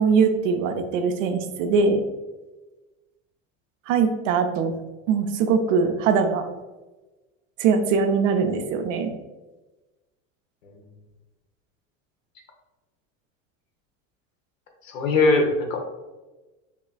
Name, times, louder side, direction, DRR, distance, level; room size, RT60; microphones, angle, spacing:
voice 1, 0.0-2.0 3.9-4.7 5.1-6.4 7.6-9.1, right 5 dB, 75° right, 7 dB, 0.6 m, -21 dB
voice 2, 14.9-15.8, left 3 dB, 90° left, 2 dB, 0.9 m, -20 dB
5.4 x 2.4 x 2.2 m, 1.1 s
hypercardioid pair, 90°, 38 cm